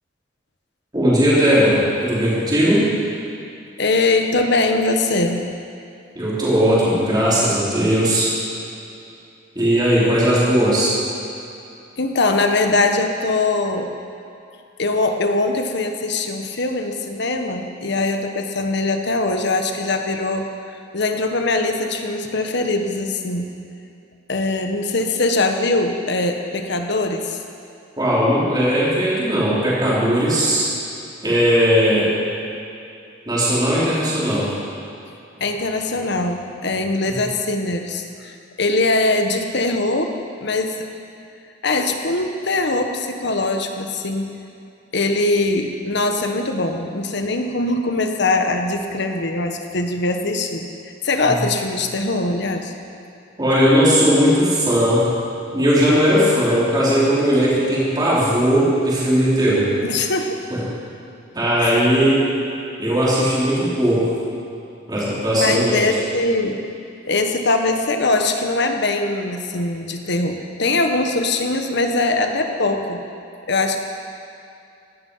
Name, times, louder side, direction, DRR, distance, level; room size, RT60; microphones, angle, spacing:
voice 1, 0.9-2.9 6.2-8.3 9.6-10.9 28.0-30.7 31.2-32.1 33.3-34.5 37.1-37.2 51.2-51.3 53.4-55.1 55.5-59.8 60.5-60.6 61.3-62.2 62.8-64.1 64.9-65.9, equal, 20° right, -8 dB, 4.2 m, -18 dB
voice 2, 3.8-5.4 12.0-13.9 14.8-20.5 20.9-23.5 24.3-27.4 35.4-40.9 41.6-44.4 44.9-50.7 51.0-52.7 59.8-60.5 61.6-61.8 65.3-66.6 67.1-73.0 73.5-73.8, left 2 dB, 65° left, 5 dB, 1.3 m, -21 dB
17.0 x 12.5 x 5.7 m, 2.6 s
head